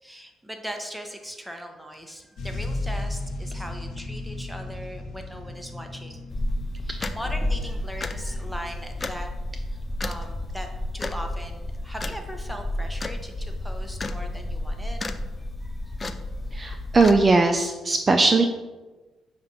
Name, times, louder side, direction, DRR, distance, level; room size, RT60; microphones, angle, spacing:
voice 1, 0.0-6.3 6.8-9.3 9.7-10.7 10.9-15.1 15.6-16.0, equal, 5° right, 3 dB, 1.0 m, -39 dB
sound 1, 2.4-9.9 10.6-10.7, left 2 dB, 70° left, 1.1 m, -36 dB
sound 2, 6.3-17.2, left 1 dB, 30° left, 0.5 m, -31 dB
voice 2, 16.5-18.4, right 3 dB, 30° right, 5 dB, 0.5 m, -19 dB
7.7 x 2.6 x 5.6 m, 1.2 s
cardioid pair, 90°, 0 cm